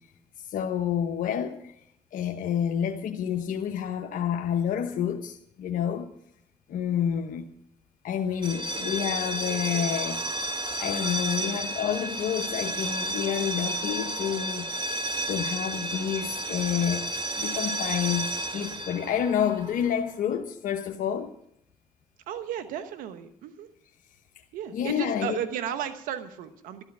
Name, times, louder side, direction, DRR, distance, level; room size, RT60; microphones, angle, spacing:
voice 1, 0.4-1.7 2.1-6.1 6.7-7.5 8.0-10.3 10.8-14.7 15.3-17.1 17.4-21.3 24.7-25.4, left 9 dB, 75° left, 1.1 m, -29 dB
sound 1, 8.4-20.1, right 1 dB, 35° right, 1.7 m, -32 dB
voice 2, 22.3-23.7 24.5-26.8, right 9 dB, 85° right, 1.1 m, -34 dB
12.5 x 12.0 x 6.1 m
supercardioid pair, 60°, 14 cm